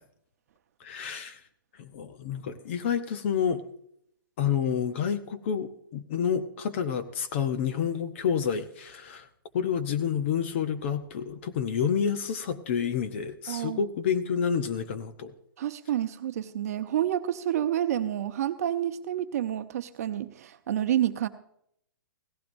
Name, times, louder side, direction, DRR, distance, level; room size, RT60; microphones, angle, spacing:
voice 1, 0.8-1.4 1.8-3.6 4.4-9.3 9.5-15.3, left 7 dB, 35° left, 10 dB, 0.8 m, -29 dB
voice 2, 13.5-13.8 15.6-21.3, right 11 dB, 45° right, 9 dB, 0.8 m, -29 dB
17.0 x 15.0 x 2.7 m, 0.71 s
hypercardioid pair, 170°, 11 cm